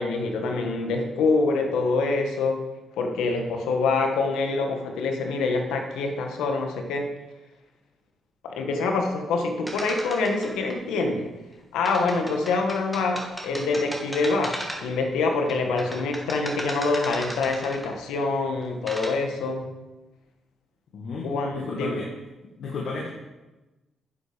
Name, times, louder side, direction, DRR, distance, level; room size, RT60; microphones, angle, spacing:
voice 1, 0.0-2.6 3.0-7.1 8.4-11.3 11.7-19.7 21.2-22.0, left 3 dB, 85° left, 3 dB, 1.5 m, -25 dB
sound 1, 9.7-10.7 11.8-15.0 15.5-18.0 18.6-19.1, equal, 5° left, 2.3 m, -35 dB
voice 2, 20.9-22.1 22.6-23.1, left 3 dB, 65° left, -3 dB, 1.7 m, -33 dB
10.0 x 7.4 x 5.1 m, 1.1 s
cardioid pair, 75°, 0 cm